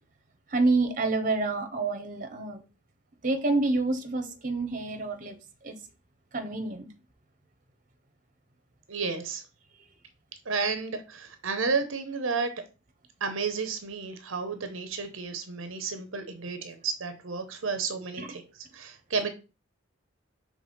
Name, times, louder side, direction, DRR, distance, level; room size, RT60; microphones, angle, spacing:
voice 1, 0.5-2.6 3.2-5.3 5.6-5.8 6.3-6.9 18.2-18.3, right 3 dB, 35° right, 1.0 m, -28 dB
voice 2, 8.9-9.4 10.4-12.5 13.2-19.3, right 4 dB, 65° right, 0.8 m, -32 dB
5.4 x 3.4 x 5.1 m
head